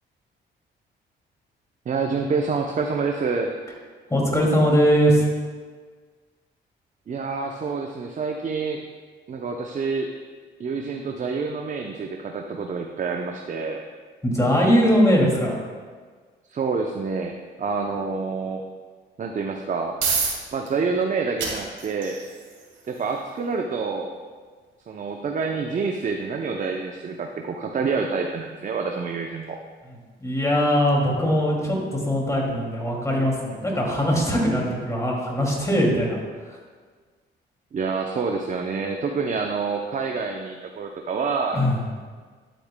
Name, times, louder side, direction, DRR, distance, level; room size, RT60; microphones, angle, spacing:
voice 1, 1.9-3.6 7.1-8.8 9.3-10.1 10.6-13.8 16.5-18.6 19.2-20.0 20.5-22.2 22.9-24.1 24.9-29.6 37.7-41.6, right 4 dB, 40° right, 2 dB, 0.6 m, -27 dB
voice 2, 4.1-5.2 14.2-15.5 30.2-36.2 36.5-36.6 41.5-41.8, equal, 15° left, -2 dB, 2.4 m, -21 dB
sound 1, 19.5-34.4, right 5 dB, 70° right, 2.3 m, -36 dB
11.5 x 8.4 x 2.2 m, 1.6 s
cardioid pair, 90°, 20 cm